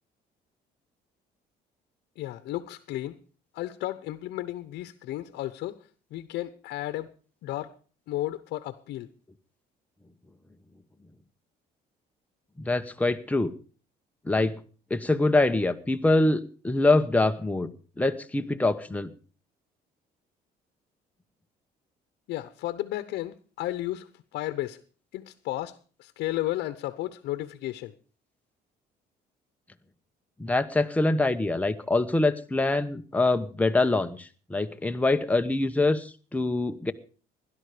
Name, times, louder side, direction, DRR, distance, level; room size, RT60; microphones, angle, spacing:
voice 1, 2.2-3.2 3.5-5.8 6.1-7.1 7.4-7.7 8.1-9.1 22.3-24.8 25.1-27.9, left 15 dB, 80° left, 11 dB, 1.0 m, -33 dB
voice 2, 12.6-13.5 14.3-14.5 14.9-19.1 30.4-36.9, left 2 dB, 10° left, 7 dB, 1.1 m, -24 dB
16.5 x 11.5 x 5.0 m, 0.39 s
cardioid pair, 110°, 17 cm